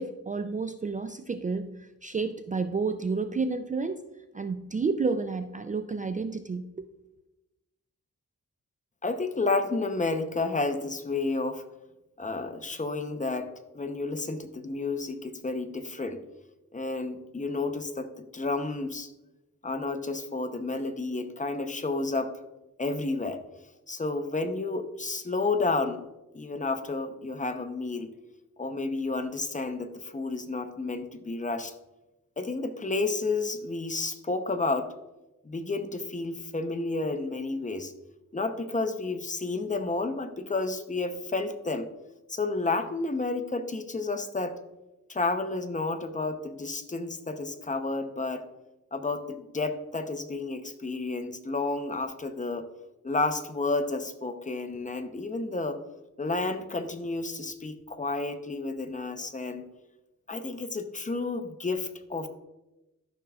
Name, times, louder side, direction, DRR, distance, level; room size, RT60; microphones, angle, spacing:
voice 1, 0.0-4.0 4.3-6.9, right 4 dB, 25° right, 9 dB, 0.4 m, -30 dB
voice 2, 9.0-11.6 12.2-16.2 16.7-19.1 19.6-22.3 22.8-23.4 23.9-26.0 26.3-28.1 28.6-31.7 32.4-34.9 35.4-37.9 38.3-41.9 42.3-44.6 45.1-48.4 48.9-52.7 53.0-55.8 56.2-59.7 60.3-62.3, left 3 dB, 25° left, 8 dB, 0.7 m, -31 dB
12.5 x 6.2 x 2.4 m, 0.98 s
wide cardioid pair, 85°, 30 cm